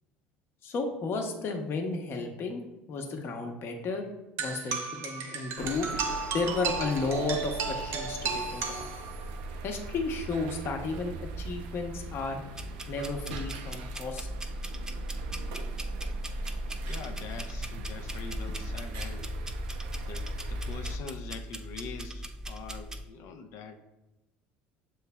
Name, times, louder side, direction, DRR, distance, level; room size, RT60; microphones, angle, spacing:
voice 1, 0.6-4.1 4.4-6.0 6.3-9.0 9.6-12.4 12.9-14.3, left 3 dB, 50° left, 4 dB, 0.8 m, -33 dB
sound 1, 4.4-9.4, right 5 dB, 60° right, 0.8 m, -34 dB
sound 2, 5.6-21.0, right 2 dB, 85° right, 0.5 m, -38 dB
sound 3, 12.5-23.0, equal, 10° right, 0.5 m, -41 dB
voice 2, 16.9-19.3 20.0-23.8, left 5 dB, 65° left, 7 dB, 0.4 m, -44 dB
6.9 x 3.1 x 2.2 m, 1.0 s
supercardioid pair, 85°, 5 cm